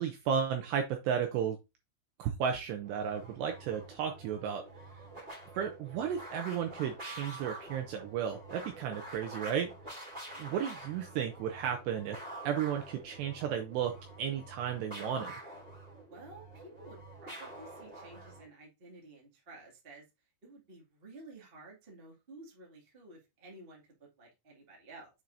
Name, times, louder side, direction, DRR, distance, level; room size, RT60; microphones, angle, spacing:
voice 1, 0.0-1.6 2.2-4.6 5.1-5.2 5.5-9.7 10.3-12.2 12.5-15.3, right 8 dB, 80° right, 4 dB, 2.5 m, -34 dB
sound 1, 2.8-18.5, right 1 dB, 15° right, 2.4 m, -47 dB
voice 2, 16.1-20.0 20.4-25.1, right 2 dB, 35° right, -2 dB, 0.8 m, -53 dB
7.5 x 5.8 x 2.7 m, 0.24 s
omnidirectional pair, 5.7 m